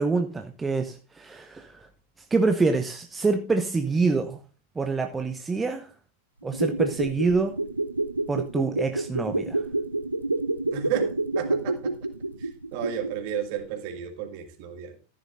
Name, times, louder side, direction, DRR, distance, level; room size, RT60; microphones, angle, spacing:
voice 1, 0.0-1.9 2.3-4.4 4.8-5.9 6.4-7.6 8.3-9.6, right 4 dB, 15° right, 0.8 m, -26 dB
sound 1, 6.4-13.3 13.6-13.7, right 2 dB, 85° right, 0.7 m, -28 dB
voice 2, 10.7-11.8 12.4-15.0, right 9 dB, 45° right, 2.3 m, -32 dB
14.0 x 11.0 x 2.6 m
figure-of-eight pair, 90°, 0 cm